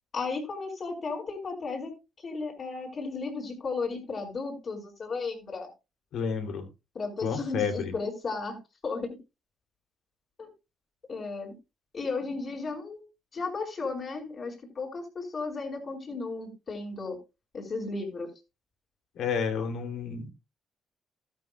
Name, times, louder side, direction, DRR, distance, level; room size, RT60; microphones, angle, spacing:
voice 1, 0.1-1.9 2.2-5.7 6.9-8.6 8.8-9.1 10.4-10.5 11.1-11.5 11.9-13.0 13.3-17.2 17.5-18.3, left 4 dB, 45° left, 5.0 m, -34 dB
voice 2, 6.1-6.7 7.2-7.9 19.1-20.3, left 6 dB, 75° left, 2.9 m, -30 dB
14.0 x 13.0 x 2.3 m
cardioid pair, 90°, 0 cm